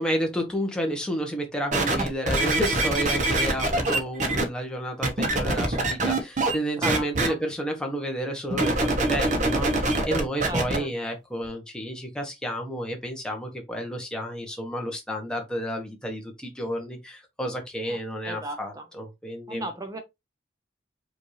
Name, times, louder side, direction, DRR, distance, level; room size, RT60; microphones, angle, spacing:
voice 1, 0.0-19.7, equal, 5° left, 1.0 m, -31 dB
sound 1, 1.7-4.4 5.0-6.6 6.8-7.3 8.5-10.8 11.4-11.5, right 2 dB, 40° right, 0.8 m, -24 dB
voice 2, 6.8-7.4 10.4-10.9 17.9-18.0 18.2-18.9 19.5-20.0, right 1 dB, 20° right, 0.5 m, -35 dB
5.2 x 2.6 x 3.1 m
head